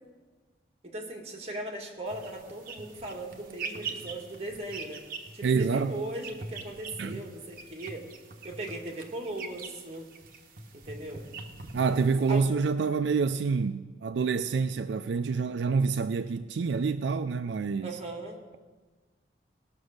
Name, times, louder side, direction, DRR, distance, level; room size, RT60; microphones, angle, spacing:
voice 1, 0.8-5.0 5.3-8.1 8.4-10.0 10.7-11.3 11.9-12.0 12.3-12.5 17.8-18.4, right 1 dB, 35° right, 1.8 m, -38 dB
sound 1, 2.1-12.5, right 4 dB, 50° right, 1.1 m, -43 dB
voice 2, 5.4-5.9 7.0-7.2 11.7-18.0, right 5 dB, 75° right, 0.4 m, -27 dB
18.0 x 6.1 x 6.5 m
head